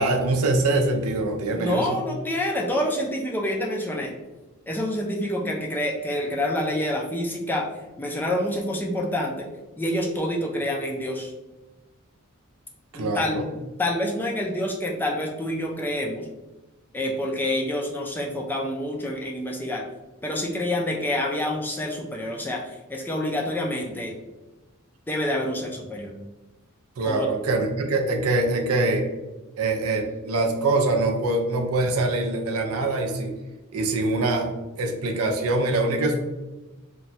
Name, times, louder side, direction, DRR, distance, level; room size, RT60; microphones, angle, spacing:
voice 1, 0.0-2.0 12.9-13.5 27.0-29.0 29.6-33.3 33.7-34.5 34.8-36.2, right 2 dB, 85° right, 3 dB, 0.5 m, -24 dB
voice 2, 1.5-4.1 4.7-7.7 8.0-9.5 9.8-11.3 12.9-13.4 13.8-16.3 16.9-19.8 20.2-24.1 25.1-26.2 27.0-27.3, left 1 dB, 10° left, -1 dB, 0.3 m, -27 dB
3.0 x 2.2 x 2.7 m, 1.1 s
head